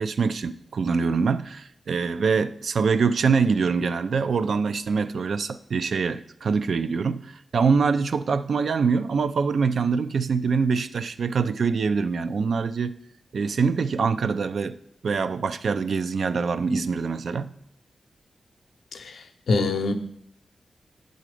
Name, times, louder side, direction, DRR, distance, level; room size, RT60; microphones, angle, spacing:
voice 1, 0.0-12.9 13.3-14.8 15.0-17.6, right 5 dB, 75° right, 12 dB, 0.3 m, -24 dB
voice 2, 18.9-19.9, left 3 dB, 80° left, 7 dB, 0.6 m, -25 dB
7.5 x 4.0 x 4.9 m, 0.71 s
cardioid pair, 55°, 0 cm